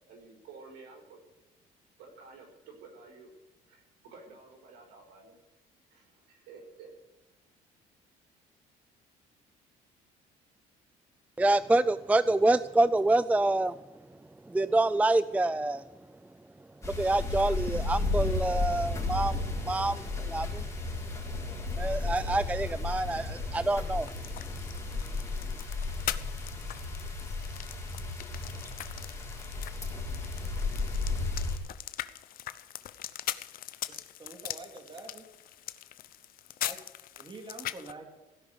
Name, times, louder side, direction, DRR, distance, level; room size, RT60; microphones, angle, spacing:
voice 1, 0.1-1.2 2.0-3.3 3.7-5.4 5.9-6.9, right 4 dB, 75° right, 0 dB, 5.0 m, -51 dB
voice 2, 11.4-13.7 14.5-15.8 16.8-20.7 21.8-24.1, right 2 dB, 10° right, 16 dB, 0.4 m, -27 dB
sound 1, 16.8-31.6, left 3 dB, 20° left, 4.5 m, -34 dB
sound 2, 24.0-37.9, left 13 dB, 65° left, 0.7 m, -41 dB
voice 3, 33.9-35.2 36.6-36.8 37.2-38.1, right 2 dB, 30° right, 4 dB, 2.7 m, -46 dB
16.5 x 5.9 x 9.6 m, 1.1 s
supercardioid pair, 85°, 16 cm